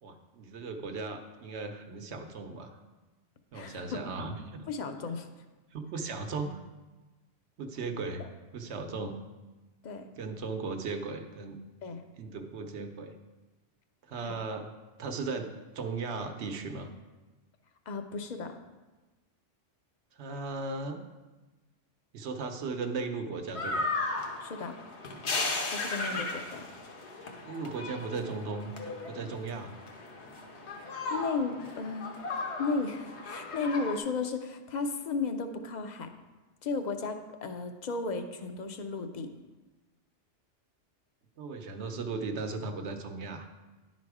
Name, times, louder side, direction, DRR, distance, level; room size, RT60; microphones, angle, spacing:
voice 1, 0.0-2.8 3.5-4.7 5.7-6.6 7.6-8.2 8.5-9.2 10.2-11.6 12.2-13.2 14.1-14.7 15.0-16.9 20.1-21.0 22.1-23.9 26.1-26.2 27.4-28.7 29.1-29.7 41.4-43.5, right 4 dB, 70° right, 6 dB, 1.0 m, -37 dB
voice 2, 3.5-4.0 4.7-5.3 9.8-10.1 11.8-12.0 14.3-14.4 17.9-18.5 24.4-24.8 25.7-26.7 31.1-32.2 32.6-36.1 36.6-39.3, left 4 dB, 50° left, 7 dB, 0.6 m, -34 dB
sound 1, 23.5-34.0, left 3 dB, 70° left, 1.2 m, -36 dB
10.5 x 4.1 x 4.8 m, 1.2 s
omnidirectional pair, 1.2 m